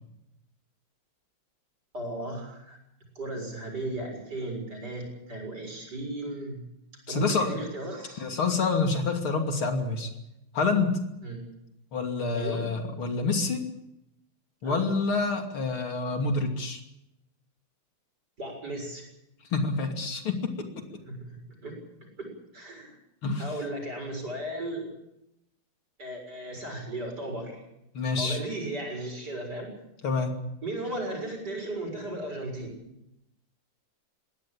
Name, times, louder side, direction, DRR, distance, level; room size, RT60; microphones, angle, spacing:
voice 1, 1.9-2.8 3.2-6.6 7.1-8.3 11.2-11.4 12.3-12.6 14.6-14.9 18.4-19.0 21.1-21.3 21.6-21.7 22.2-23.0 23.4-24.9 26.0-27.6 28.2-29.7 30.6-32.7, right 1 dB, 50° right, 2 dB, 7.5 m, -35 dB
voice 2, 7.1-7.6 8.2-10.1 10.5-10.9 11.9-13.6 14.6-16.8 19.5-20.3 23.2-23.5 27.9-28.4 30.0-30.3, left 4 dB, 75° left, 4 dB, 3.6 m, -27 dB
22.0 x 17.0 x 8.7 m, 0.85 s
omnidirectional pair, 2.3 m